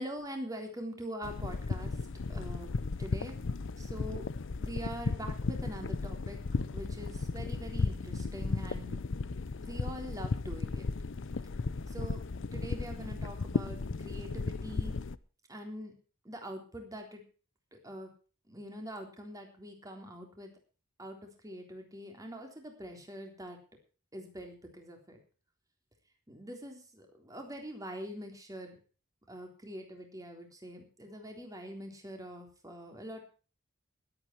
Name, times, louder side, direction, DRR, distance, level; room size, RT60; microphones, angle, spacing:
voice 1, 0.0-1.9 2.3-3.3 3.8-4.3 4.6-6.4 6.7-9.0 9.6-10.8 11.9-15.0 15.5-15.9 16.3-17.2 17.7-18.1 18.5-20.5 21.0-21.2 21.4-23.6 24.1-25.2 26.3-28.8 29.3-33.2, equal, 15° right, 3 dB, 3.7 m, -44 dB
sound 1, 1.2-15.2, left 3 dB, 65° left, 0.6 m, -35 dB
21.0 x 9.0 x 4.6 m, 0.37 s
head